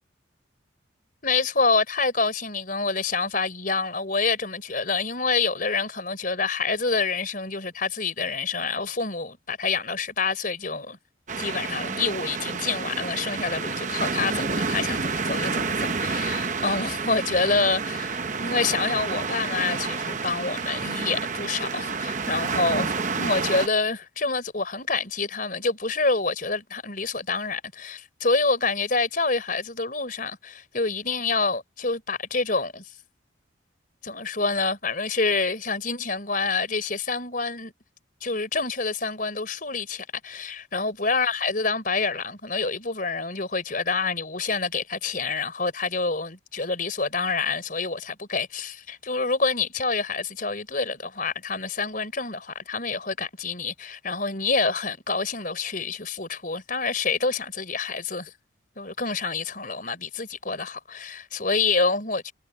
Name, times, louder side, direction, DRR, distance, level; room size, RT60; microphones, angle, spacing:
voice 1, 1.2-11.0 11.4-32.9 34.0-37.7 38.2-58.3 58.8-62.3, left 4 dB, 45° left, 4.6 m, -27 dB
sound 1, 11.3-23.7, right 4 dB, 40° right, 0.9 m, -29 dB
head